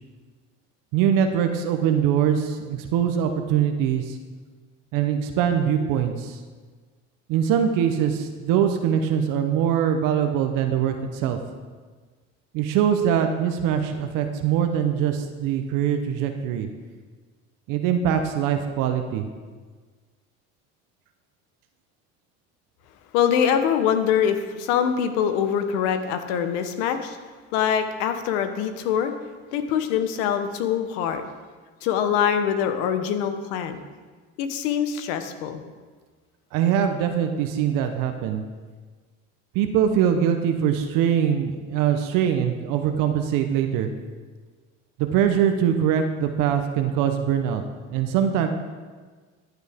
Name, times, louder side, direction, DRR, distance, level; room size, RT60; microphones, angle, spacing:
voice 1, 0.9-4.2 4.9-6.4 7.3-11.4 12.5-16.7 17.7-19.3 36.5-38.4 39.5-43.9 45.0-47.6 47.9-48.5, right 9 dB, 70° right, 6 dB, 1.0 m, -22 dB
voice 2, 23.1-27.2 27.5-29.1 29.5-31.2 31.8-33.8 34.4-35.7, left 8 dB, 80° left, 8 dB, 1.1 m, -24 dB
14.0 x 8.1 x 3.6 m, 1.4 s
supercardioid pair, 85°, 34 cm